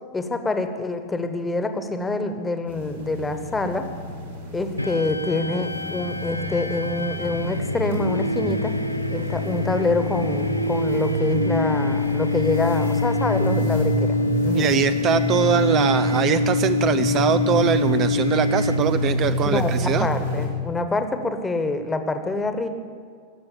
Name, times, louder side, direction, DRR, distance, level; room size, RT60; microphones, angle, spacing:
voice 1, 0.1-3.9 4.5-8.7 9.1-14.2 14.4-14.7 19.4-22.7, left 2 dB, 10° left, 8 dB, 1.3 m, -26 dB
sound 1, 2.7-20.5, equal, 75° right, 4.0 m, -28 dB
sound 2, 4.8-19.3, left 3 dB, 90° left, 0.5 m, -26 dB
voice 2, 14.5-20.1, right 9 dB, 35° right, 12 dB, 0.4 m, -22 dB
19.0 x 7.6 x 8.6 m, 2.2 s
figure-of-eight pair, 90°, 0 cm